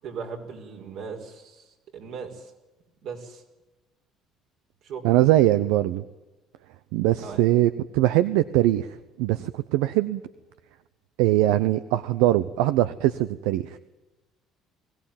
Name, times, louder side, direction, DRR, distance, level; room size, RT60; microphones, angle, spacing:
voice 1, 0.0-2.5 3.0-3.4 4.8-5.2 7.2-7.5, right 5 dB, 70° right, 2 dB, 5.3 m, -38 dB
voice 2, 5.0-6.0 6.9-8.9 9.2-10.2 11.2-13.8, right 15 dB, 90° right, 13 dB, 0.8 m, -21 dB
21.5 x 17.0 x 9.1 m, 1.1 s
supercardioid pair, 95°, 0 cm